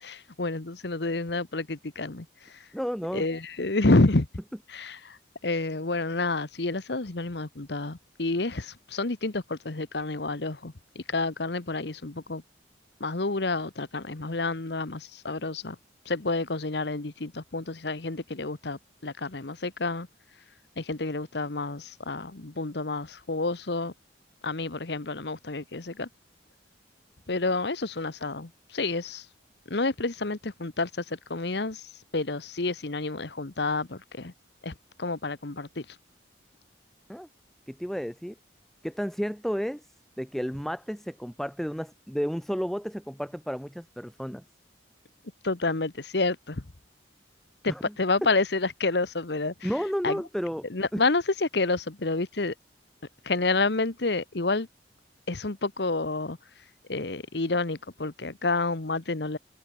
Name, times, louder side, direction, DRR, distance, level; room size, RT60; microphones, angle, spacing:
voice 1, 0.0-2.3 3.1-4.3 4.7-5.2 5.4-12.4 13.0-15.8 16.1-20.1 20.8-23.9 24.4-26.1 27.3-29.2 29.7-34.3 34.6-35.8 45.4-46.6 47.6-49.7 50.0-50.2 50.7-52.5 53.3-54.7 55.3-56.4 56.9-59.4, left 3 dB, 65° left, 1.2 m, -29 dB
voice 2, 2.7-3.2 37.1-37.3 37.7-38.3 38.8-39.9 40.2-44.4 47.7-47.9 49.6-50.7 50.9-51.0, equal, ahead, 1.7 m, -32 dB
head